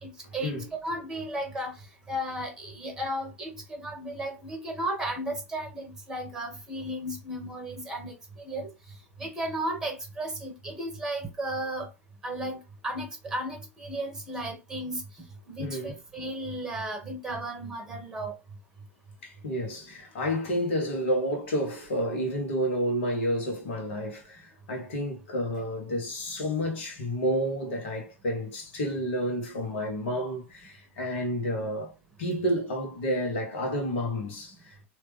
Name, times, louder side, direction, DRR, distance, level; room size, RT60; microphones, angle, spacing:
voice 1, 0.0-1.7 2.1-8.7 9.2-11.9 12.2-18.3, right 1 dB, 5° right, 1.5 m, -34 dB
voice 2, 15.6-15.9 19.2-31.9 32.2-34.9, equal, 60° left, 1.5 m, -30 dB
3.2 x 2.9 x 3.4 m
figure-of-eight pair, 90°, 7 cm